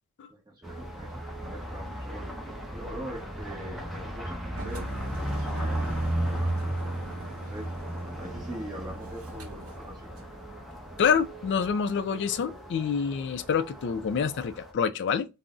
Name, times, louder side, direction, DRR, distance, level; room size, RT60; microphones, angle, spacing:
voice 1, 0.3-2.3 2.7-6.8 7.4-7.7 8.1-10.1, right 1 dB, 20° right, 0.9 m, -43 dB
sound 1, 0.6-14.7, right 1 dB, ahead, 0.5 m, -35 dB
Engine, 4.5-10.3, right 3 dB, 75° right, 0.7 m, -45 dB
voice 2, 11.0-15.3, left 6 dB, 55° left, 0.3 m, -27 dB
3.5 x 2.0 x 2.5 m
head